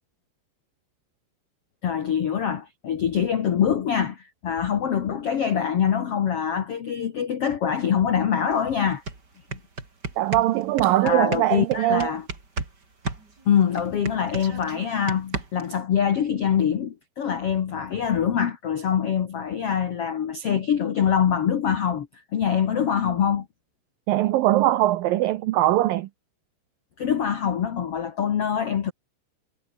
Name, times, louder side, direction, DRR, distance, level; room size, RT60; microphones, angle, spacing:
voice 1, 1.8-9.0 9.5-9.6 11.0-12.2 13.4-22.1 22.3-23.5 27.0-28.9, left 8 dB, 85° left, 1.3 m, -24 dB
hitting desk with hands, 8.5-8.6 8.9-12.7 13.0-15.7, right 3 dB, 25° right, 4.1 m, -33 dB
voice 2, 10.2-12.1 24.1-26.1, right 15 dB, 90° right, 2.0 m, -21 dB
omnidirectional pair, 5.1 m